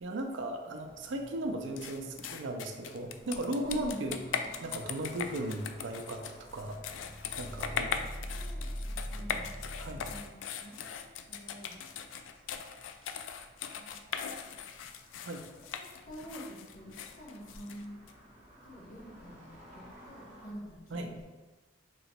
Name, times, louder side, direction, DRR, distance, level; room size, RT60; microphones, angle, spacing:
voice 1, 0.0-4.2 4.6-6.8 7.4-8.0 9.8-10.0 15.2-15.4 20.9-21.1, right 1 dB, 70° right, 4 dB, 0.5 m, -36 dB
sound 1, 0.7-20.5, equal, 40° right, 1.1 m, -55 dB
sound 2, 1.8-18.1, left 7 dB, 80° left, 0.3 m, -40 dB
voice 2, 3.7-4.0 8.3-9.4 9.9-10.9 11.2-11.8 12.5-12.9 13.7-14.1 15.5-18.0 18.6-21.2, equal, 50° left, -4 dB, 1.0 m, -48 dB
sound 3, 6.4-10.2, equal, 5° left, 1.0 m, -41 dB
3.0 x 2.9 x 4.2 m, 1.2 s
head